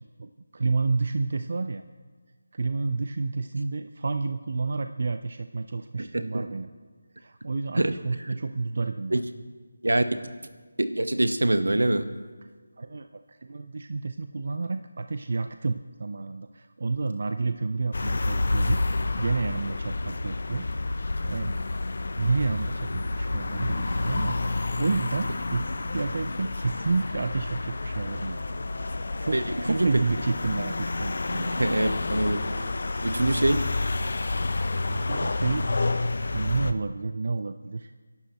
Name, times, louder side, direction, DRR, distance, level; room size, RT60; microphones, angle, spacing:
voice 1, 0.2-1.8 2.5-6.7 7.2-9.1 12.8-18.8 19.2-21.0 21.2-21.6 22.2-28.4 29.2-31.6 34.4-34.6 34.9-35.7 36.3-37.9, right 3 dB, 55° right, 9 dB, 0.5 m, -30 dB
voice 2, 6.0-6.4 7.8-7.9 8.2-8.4 9.1-9.2 9.8-10.0 10.8-12.1 29.3-29.9 31.5-32.5 33.0-33.6, right 1 dB, 80° right, 10 dB, 1.1 m, -24 dB
sound 1, 17.9-36.7, left 2 dB, 60° left, 0.8 m, -29 dB
27.5 x 11.5 x 3.0 m, 1.5 s
figure-of-eight pair, 165°, 0 cm